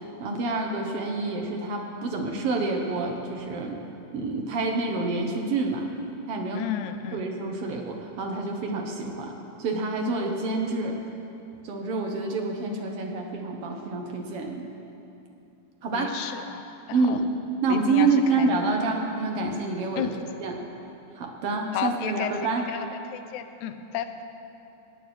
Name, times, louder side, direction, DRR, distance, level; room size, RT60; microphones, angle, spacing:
voice 1, 0.2-3.8 4.1-5.9 6.3-6.6 7.1-11.0 11.6-14.7 15.8-16.1 16.9-17.2 17.6-20.1 20.4-20.5 21.1-22.6, right 3 dB, 70° right, 1 dB, 1.4 m, -27 dB
voice 2, 6.5-7.2 15.9-17.2 17.7-18.5 20.0-20.2 21.7-22.3 22.7-24.2, left 10 dB, 75° left, 9 dB, 1.8 m, -33 dB
20.0 x 8.8 x 4.4 m, 2.8 s
omnidirectional pair, 3.9 m